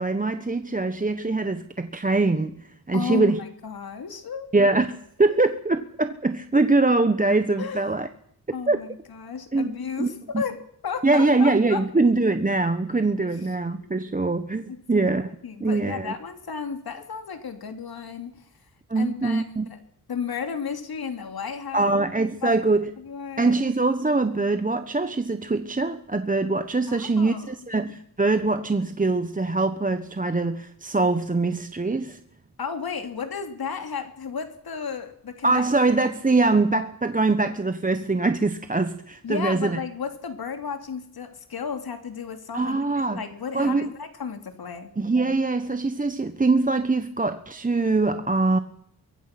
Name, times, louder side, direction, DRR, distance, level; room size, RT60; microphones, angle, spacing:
voice 1, 0.0-3.4 4.5-8.1 8.7-8.8 9.5-9.7 10.0-10.1 10.3-10.4 11.0-15.3 15.6-16.1 18.9-19.7 21.7-22.9 23.4-32.2 35.4-39.8 42.5-43.2 43.5-43.9 45.0-48.6, right 3 dB, 20° right, 1.2 m, -23 dB
voice 2, 2.9-4.5 7.6-7.9 8.5-11.9 13.2-13.3 13.6-13.9 14.7-15.1 15.4-18.5 18.9-19.8 20.1-21.9 22.4-22.6 23.0-23.6 26.9-27.5 32.6-35.9 39.2-42.8 43.1-44.9, left 6 dB, 70° left, 2.9 m, -33 dB
25.0 x 22.5 x 6.0 m
wide cardioid pair, 90°, 38 cm